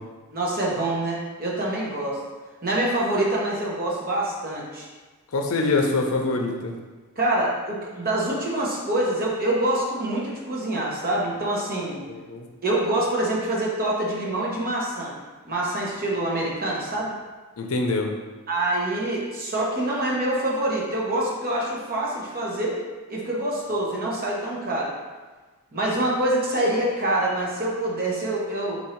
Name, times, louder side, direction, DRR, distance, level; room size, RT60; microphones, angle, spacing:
voice 1, 0.3-2.2 2.6-4.9 7.2-12.0 12.6-15.2 15.5-17.1 18.5-22.8 23.1-24.9 25.7-28.8, right 1 dB, 40° right, -4 dB, 1.0 m, -25 dB
voice 2, 5.3-6.7 12.1-12.4 17.6-18.1, left 3 dB, 65° left, 2 dB, 0.6 m, -24 dB
4.3 x 2.7 x 4.3 m, 1.3 s
head